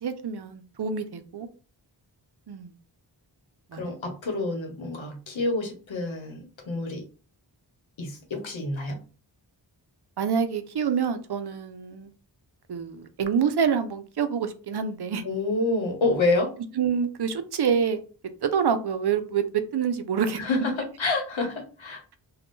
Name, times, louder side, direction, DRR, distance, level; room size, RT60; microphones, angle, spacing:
voice 1, 0.0-1.5 2.5-2.7 3.7-3.8 10.2-12.1 12.7-15.2 16.8-18.0 18.4-20.4, right 7 dB, 60° right, 10 dB, 0.5 m, -27 dB
voice 2, 3.7-7.0 8.0-9.0 15.2-16.6 20.4-22.2, left 2 dB, 85° left, 4 dB, 0.9 m, -28 dB
2.5 x 2.2 x 3.6 m, 0.36 s
cardioid pair, 45°, 45 cm